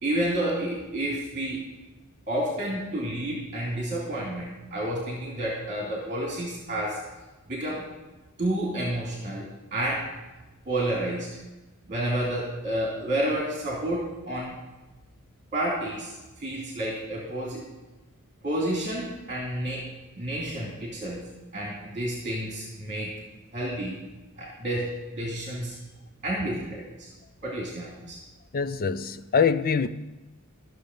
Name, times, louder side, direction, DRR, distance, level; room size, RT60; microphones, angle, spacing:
voice 1, 0.0-1.6 2.3-7.0 7.5-7.9 8.4-10.1 10.7-11.3 11.9-14.6 15.5-17.6 18.4-19.9 20.2-21.2 21.5-23.2 23.5-24.0 24.4-25.8 26.2-27.1 27.4-28.2, right 1 dB, 35° right, 2.5 m, -30 dB
voice 2, 28.5-29.9, left 6 dB, 40° left, 0.5 m, -24 dB
14.0 x 6.5 x 5.3 m
head